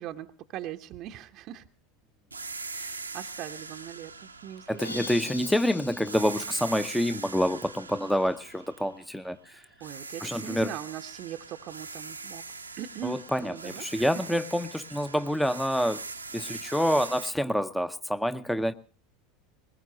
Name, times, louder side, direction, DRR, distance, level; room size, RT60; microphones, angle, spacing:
voice 1, 0.0-1.7 2.7-5.1 9.8-12.4 12.8-14.1, right 11 dB, 45° right, 5 dB, 0.8 m, -40 dB
sound 1, 2.3-5.6 6.1-9.4 9.8-17.3, right 4 dB, 85° right, 0.9 m, -42 dB
voice 2, 4.7-9.6 10.2-10.7 13.0-16.0 16.3-18.7, equal, 5° left, 12 dB, 0.7 m, -27 dB
sound 2, 4.8-7.6, left 2 dB, 85° left, 0.9 m, -42 dB
21.0 x 20.0 x 2.7 m, 0.36 s
figure-of-eight pair, 80°, 0 cm